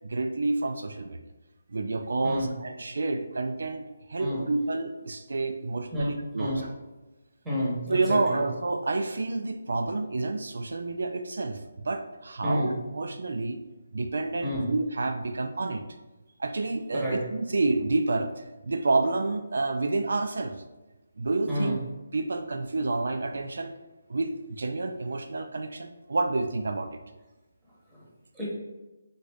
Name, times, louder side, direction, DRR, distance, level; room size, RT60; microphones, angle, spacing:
voice 1, 0.0-1.2 1.7-3.8 4.1-6.7 7.9-13.6 13.9-15.8 16.4-20.5 21.2-21.8 22.1-23.7 24.1-27.0, right 3 dB, 65° right, 6 dB, 0.3 m, -29 dB
voice 2, 7.4-8.4 12.4-12.7 14.4-14.7 16.9-17.2 21.5-21.7 27.9-28.0 28.3-28.5, equal, 5° right, -9 dB, 0.8 m, -30 dB
4.0 x 3.7 x 3.4 m, 1.1 s
hypercardioid pair, 180°, 0 cm